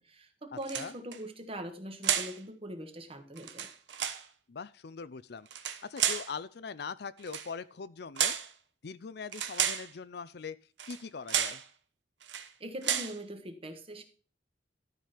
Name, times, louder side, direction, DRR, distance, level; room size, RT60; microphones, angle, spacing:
voice 1, 0.0-3.7 12.6-14.0, equal, 30° right, 7 dB, 1.4 m, -42 dB
voice 2, 0.5-0.9 4.5-5.5 5.8-8.4 8.8-10.6 10.9-11.6, left 5 dB, 60° left, 16 dB, 0.5 m, -41 dB
sound 1, 0.6-1.2 2.0-2.4 3.4-4.2 5.5-6.3 7.2-7.5 8.2-8.5 9.3-9.9 10.8-11.0 11.3-11.6 12.2-12.5 12.8-13.2, right 9 dB, 85° right, 1.0 m, -32 dB
12.5 x 5.2 x 5.7 m, 0.39 s
head